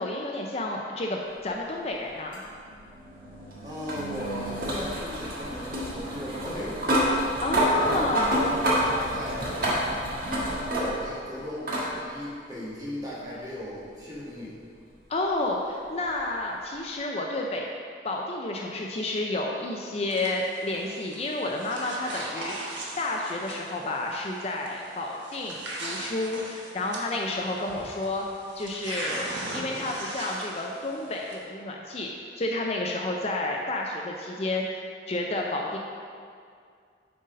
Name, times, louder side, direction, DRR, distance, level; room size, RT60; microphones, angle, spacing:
voice 1, 0.0-2.4 7.4-8.4 15.1-17.7 18.0-28.2 28.5-35.8, left 2 dB, 35° left, 0 dB, 0.5 m, -30 dB
sound 1, 2.3-11.2 11.7-11.9 13.2-13.3 16.2-16.3, equal, 50° right, 1.5 m, -28 dB
voice 2, 3.6-7.0 7.6-8.1 8.4-9.5 10.2-14.6, left 1 dB, 20° right, -8 dB, 1.8 m, -37 dB
sound 2, 20.1-31.4, right 1 dB, 85° right, 1.2 m, -39 dB
7.7 x 4.0 x 5.1 m, 2.2 s
head